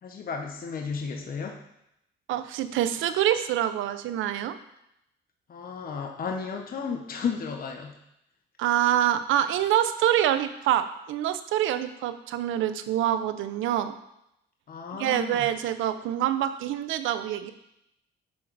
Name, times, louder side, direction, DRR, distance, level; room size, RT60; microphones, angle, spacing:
voice 1, 0.0-1.6 5.5-8.0 14.7-15.5, left 6 dB, 45° left, 2 dB, 0.9 m, -33 dB
voice 2, 2.3-4.5 8.6-13.9 15.0-17.5, right 11 dB, 85° right, 11 dB, 0.6 m, -26 dB
11.5 x 3.8 x 4.6 m, 0.81 s
cardioid pair, 90°, 20 cm